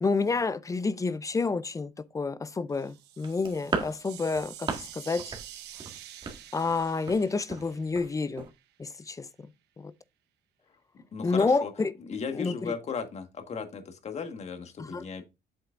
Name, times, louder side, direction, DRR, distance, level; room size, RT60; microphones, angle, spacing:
voice 1, 0.0-5.3 6.5-8.5 8.8-9.3 9.8-9.9 11.2-11.9 12.3-12.7 14.8-15.0, left 4 dB, 20° left, 0.5 m, -29 dB
sound 1, 2.7-8.6, right 12 dB, 85° right, 0.9 m, -48 dB
sound 2, 3.2-4.9 5.2-5.5 5.7-7.2 7.5-7.7 8.0-8.1 8.4-8.5, right 4 dB, 30° right, 1.8 m, -35 dB
voice 2, 10.9-11.7 12.1-15.2, left 6 dB, 40° left, 1.5 m, -36 dB
8.1 x 6.4 x 2.5 m
cardioid pair, 110°, 17 cm